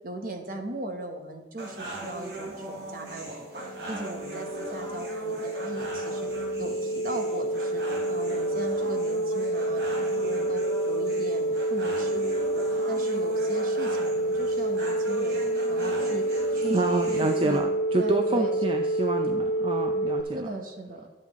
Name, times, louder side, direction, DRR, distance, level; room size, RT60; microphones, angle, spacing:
voice 1, 0.0-6.3 6.6-16.3 16.5-17.7 18.0-18.6 20.3-21.1, right 2 dB, 50° right, 5 dB, 1.1 m, -38 dB
sound 1, 1.6-17.6, right 2 dB, 70° right, 2.9 m, -39 dB
sound 2, 3.2-20.2, right 1 dB, 50° left, 0.3 m, -28 dB
voice 2, 16.7-20.5, right 2 dB, 30° right, 4 dB, 0.4 m, -28 dB
10.5 x 7.4 x 3.6 m, 1.1 s
head